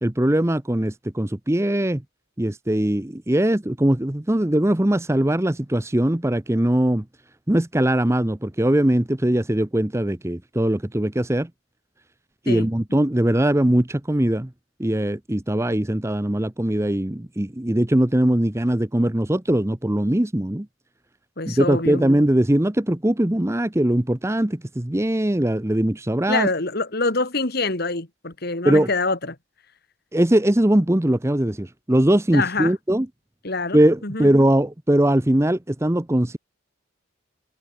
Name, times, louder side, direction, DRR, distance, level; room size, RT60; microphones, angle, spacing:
voice 1, 0.0-2.0 2.4-7.0 7.5-11.5 12.5-14.5 14.8-20.7 21.5-26.5 28.6-28.9 30.1-33.1 33.7-36.4, right 1 dB, 15° right, 0.7 m, -21 dB
voice 2, 21.4-22.0 26.3-29.4 32.3-32.7 33.4-34.3, left 3 dB, 45° left, 2.0 m, -25 dB
head